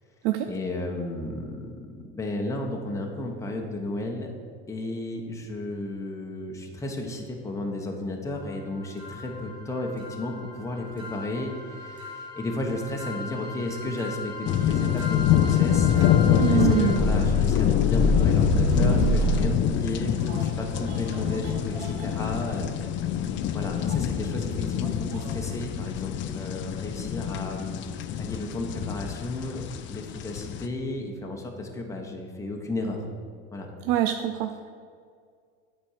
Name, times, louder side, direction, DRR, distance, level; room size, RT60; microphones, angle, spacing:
voice 1, 0.5-4.3 4.7-22.6 23.5-27.9 28.2-29.6 29.9-33.0 33.5-33.7, left 2 dB, 10° left, 0 dB, 1.0 m, -33 dB
sound 1, 9.0-19.4, equal, 15° right, 2.1 m, -29 dB
sound 2, 14.5-30.7, left 10 dB, 35° left, 0.5 m, -26 dB
voice 2, 16.4-17.0 33.9-34.7, right 12 dB, 60° right, 7 dB, 0.5 m, -24 dB
sound 3, 18.7-25.6, right 4 dB, 80° right, 1.4 m, -45 dB
8.7 x 4.4 x 6.5 m, 2.2 s
supercardioid pair, 120°, 32 cm